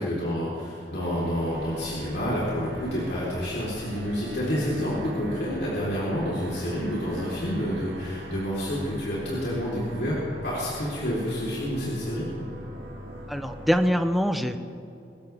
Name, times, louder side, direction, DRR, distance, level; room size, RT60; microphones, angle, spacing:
voice 1, 0.0-10.2 10.4-12.2, equal, 70° left, -7 dB, 4.1 m, -29 dB
sound 1, 1.0-13.7, right 1 dB, 70° right, 2.4 m, -42 dB
voice 2, 13.3-14.6, equal, ahead, 7 dB, 0.8 m, -24 dB
25.5 x 14.0 x 3.6 m, 2.9 s
head